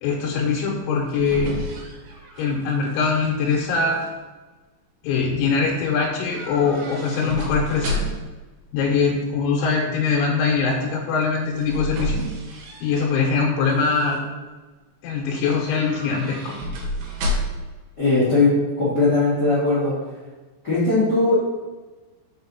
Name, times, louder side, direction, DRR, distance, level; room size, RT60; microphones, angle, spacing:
voice 1, 0.0-1.6 2.4-4.0 5.0-8.0 8.7-12.2 12.8-14.2 15.0-16.5, left 5 dB, 85° left, -2 dB, 3.2 m, -22 dB
sound 1, 0.8-3.2 3.5-4.1 6.3-8.4 11.2-13.3 13.7-14.2 15.7-17.8 18.0-18.1, equal, 70° right, 2.3 m, -31 dB
voice 2, 18.0-19.9 20.6-21.3, left 3 dB, 60° left, -10 dB, 1.0 m, -19 dB
6.0 x 5.0 x 4.0 m, 1.3 s
omnidirectional pair, 5.4 m